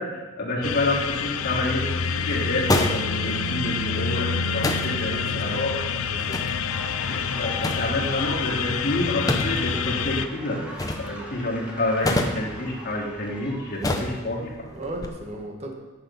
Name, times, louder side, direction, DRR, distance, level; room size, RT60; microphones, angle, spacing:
voice 1, 0.0-5.9 6.1-6.3 7.1-14.5, left 1 dB, 50° left, -4 dB, 2.6 m, -28 dB
sound 1, 0.6-10.3, left 6 dB, 75° left, 0.5 m, -27 dB
sound 2, 1.0-15.1, left 1 dB, 15° left, 0.8 m, -32 dB
voice 2, 5.1-5.6 6.1-6.4 14.7-15.7, right 1 dB, 30° right, 1 dB, 1.2 m, -36 dB
sound 3, 6.7-13.9, equal, 5° right, 1.5 m, -41 dB
10.0 x 6.5 x 5.5 m, 1.2 s
head